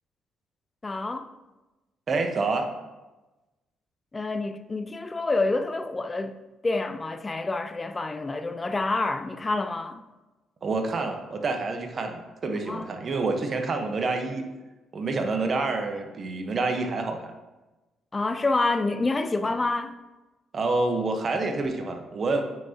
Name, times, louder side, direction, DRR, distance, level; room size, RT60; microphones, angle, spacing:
voice 1, 0.8-1.3 4.1-10.0 12.7-12.9 18.1-19.9, left 3 dB, 30° left, 0.6 m, -28 dB
voice 2, 2.1-2.7 10.6-14.5 14.9-17.3 20.5-22.4, right 3 dB, 50° right, 1.1 m, -27 dB
9.1 x 5.9 x 2.9 m
hypercardioid pair, 50°, 0 cm